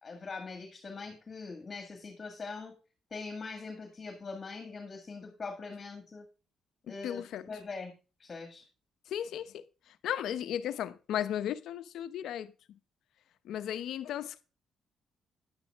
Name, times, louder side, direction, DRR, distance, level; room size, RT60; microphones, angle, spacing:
voice 1, 0.0-2.7 3.1-6.3 6.9-7.2 7.5-7.9 8.2-8.7, left 4 dB, 35° left, 1.9 m, -42 dB
voice 2, 7.0-7.5 9.1-9.7 10.0-12.5 13.4-14.4, left 10 dB, 80° left, 0.8 m, -35 dB
10.5 x 9.0 x 3.6 m
cardioid pair, 90°, 0 cm